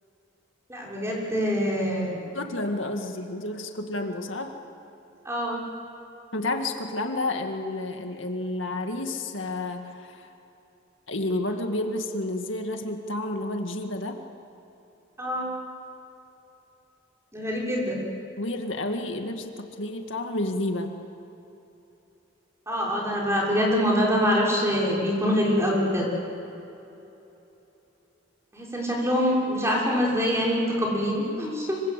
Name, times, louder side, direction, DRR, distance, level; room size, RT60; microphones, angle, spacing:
voice 1, 0.7-2.2 5.2-5.6 15.2-15.5 17.3-18.0 22.7-26.1 28.5-31.8, equal, 15° right, -3 dB, 6.1 m, -25 dB
voice 2, 2.3-4.5 6.3-10.3 11.1-14.2 18.4-20.9, left 2 dB, 75° left, 4 dB, 2.1 m, -30 dB
26.0 x 24.5 x 8.4 m, 3.0 s
head